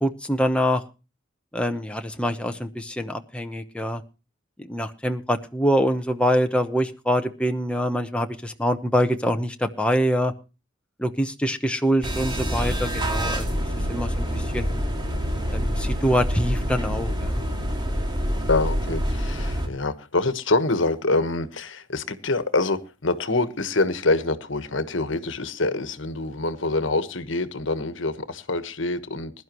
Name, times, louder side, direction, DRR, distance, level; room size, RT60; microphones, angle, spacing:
voice 1, 0.0-0.8 1.5-4.0 4.6-10.3 11.0-13.5 13.9-14.7 15.5-17.4, equal, 5° left, 0.9 m, -24 dB
sound 1, 12.0-19.7, equal, 25° right, 2.4 m, -26 dB
sound 2, 12.2-17.8, left 2 dB, 55° left, 0.8 m, -39 dB
voice 2, 18.5-29.3, left 2 dB, 75° left, 1.3 m, -25 dB
21.0 x 11.5 x 3.0 m
head